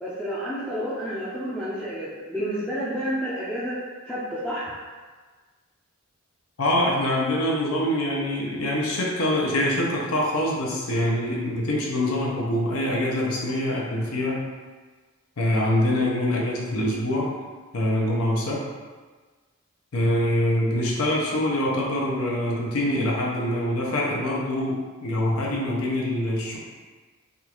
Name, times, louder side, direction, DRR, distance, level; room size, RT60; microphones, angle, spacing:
voice 1, 0.0-3.8 4.1-4.7, equal, 5° left, -10 dB, 0.4 m, -30 dB
voice 2, 6.6-14.4 15.4-17.3 17.7-18.7 19.9-26.6, left 1 dB, 90° left, -3 dB, 0.6 m, -24 dB
3.5 x 2.4 x 2.9 m, 1.4 s
head